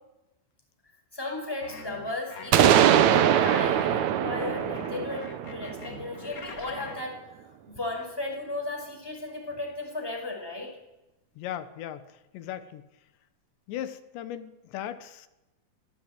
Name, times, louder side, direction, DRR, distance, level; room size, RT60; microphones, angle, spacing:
voice 1, 1.1-7.2 7.7-10.7, left 2 dB, 5° left, 1 dB, 5.3 m, -35 dB
sound 1, 1.6-7.1, left 4 dB, 50° left, 1.0 m, -42 dB
sound 2, 2.5-6.3, right 10 dB, 85° right, 1.6 m, -22 dB
voice 2, 11.4-12.1 12.3-12.9 13.7-15.3, left 11 dB, 85° left, 12 dB, 3.6 m, -37 dB
25.5 x 17.0 x 9.3 m, 1.0 s
omnidirectional pair, 4.9 m